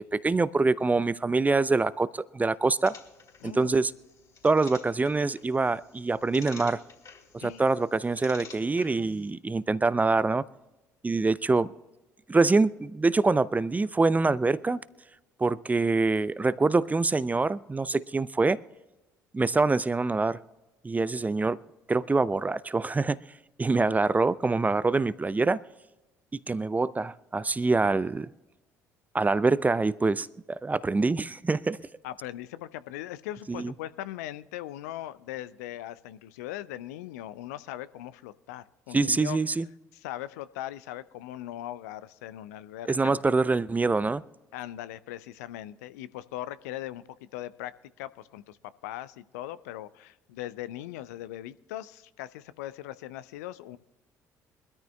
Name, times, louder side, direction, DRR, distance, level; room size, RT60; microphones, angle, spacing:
voice 1, 0.0-3.0 3.4-3.9 4.4-6.8 7.3-10.4 11.0-11.7 12.3-14.8 15.4-18.6 19.3-20.4 20.8-21.6 21.9-23.2 23.6-25.6 26.3-28.3 29.1-31.8 33.5-33.7 38.9-39.7 42.9-44.2, right 3 dB, 15° right, 0.5 m, -25 dB
sound 1, 2.9-9.3, left 5 dB, 40° left, 3.5 m, -51 dB
voice 2, 3.4-3.7 7.4-7.6 32.0-39.4 39.9-43.1 44.5-47.7 48.0-48.6 48.8-53.8, left 13 dB, 70° left, 0.5 m, -39 dB
24.0 x 13.5 x 2.3 m
figure-of-eight pair, 50°, 9 cm